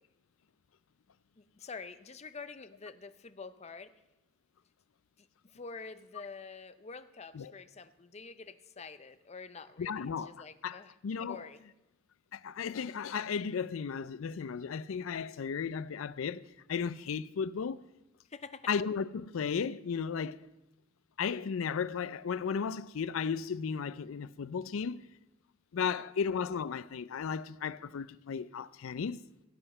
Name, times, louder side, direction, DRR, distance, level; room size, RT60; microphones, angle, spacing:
voice 1, 1.4-3.9 5.2-10.9 11.2-11.6 18.3-18.7 25.7-26.1, left 4 dB, 35° left, 0.6 m, -47 dB
voice 2, 9.8-11.4 12.3-16.4 16.7-17.8 18.7-20.4 21.2-25.1 25.7-29.2, left 6 dB, 80° left, 0.4 m, -35 dB
17.0 x 7.8 x 5.5 m
head